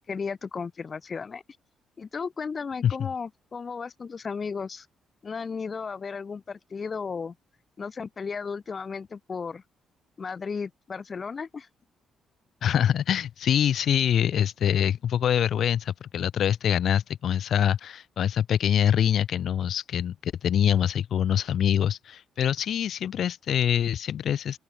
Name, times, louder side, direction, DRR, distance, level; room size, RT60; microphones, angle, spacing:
voice 1, 0.1-1.4 2.0-4.9 5.2-7.3 7.8-9.6 10.2-11.7, left 5 dB, 40° left, 1.4 m, -34 dB
voice 2, 12.6-24.6, left 9 dB, 65° left, 1.0 m, -24 dB
open air
cardioid pair, 90°, 0 cm